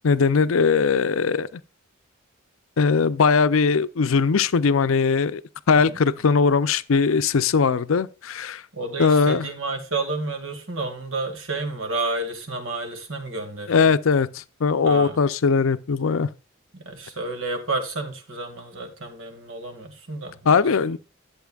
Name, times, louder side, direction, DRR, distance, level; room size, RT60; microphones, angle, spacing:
voice 1, 0.0-1.5 2.8-5.4 5.7-8.6 9.0-9.4 13.7-16.3 20.5-21.0, left 5 dB, 75° left, 0.5 m, -20 dB
voice 2, 8.7-13.9 14.8-15.2 16.7-20.6, right 3 dB, 70° right, 2.1 m, -31 dB
11.5 x 7.9 x 2.4 m
head